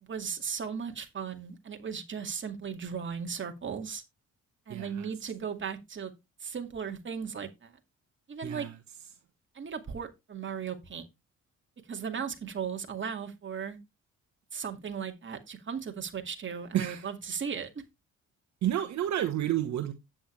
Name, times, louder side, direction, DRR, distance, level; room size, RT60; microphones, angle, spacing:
voice 1, 0.0-4.0 4.7-6.1 6.4-7.7 8.3-8.7 9.5-11.0 11.9-13.8 14.5-17.7, right 7 dB, 40° right, 2.2 m, -36 dB
voice 2, 4.7-5.1 8.4-8.7 16.7-17.0 18.6-19.9, right 11 dB, 70° right, 1.1 m, -30 dB
9.9 x 8.7 x 3.3 m
cardioid pair, 90°, 30 cm